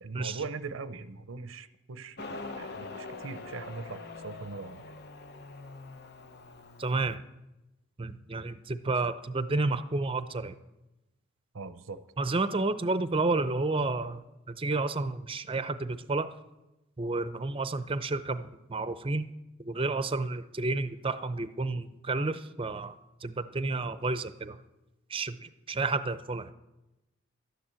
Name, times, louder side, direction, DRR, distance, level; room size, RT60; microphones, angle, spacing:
voice 1, 0.0-4.8 11.5-12.0, right 4 dB, 90° right, 13 dB, 0.7 m, -41 dB
Motorcycle, 2.2-7.2, left 3 dB, 55° left, 0.9 m, -43 dB
voice 2, 6.8-7.2 8.0-10.6 12.2-16.3 17.0-19.3 19.7-22.9 23.2-24.6 25.1-26.5, right 3 dB, 25° right, 13 dB, 0.6 m, -31 dB
13.0 x 10.0 x 7.6 m, 0.98 s
head